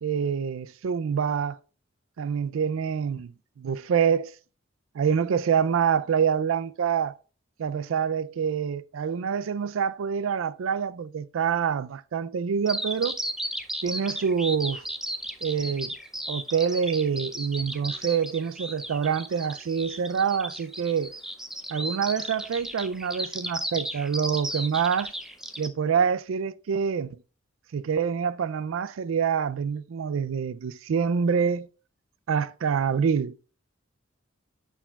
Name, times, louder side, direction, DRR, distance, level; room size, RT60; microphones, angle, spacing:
voice 1, 0.0-1.6 2.2-4.3 4.9-7.1 7.6-13.2 13.8-14.8 15.4-16.0 16.3-21.1 21.7-25.1 25.6-27.2 27.7-31.7 32.3-33.4, right 7 dB, 85° right, 0.4 m, -26 dB
Bird vocalization bird call bird song, 12.7-25.7, right 1 dB, 5° right, 0.5 m, -34 dB
11.0 x 4.6 x 2.3 m
head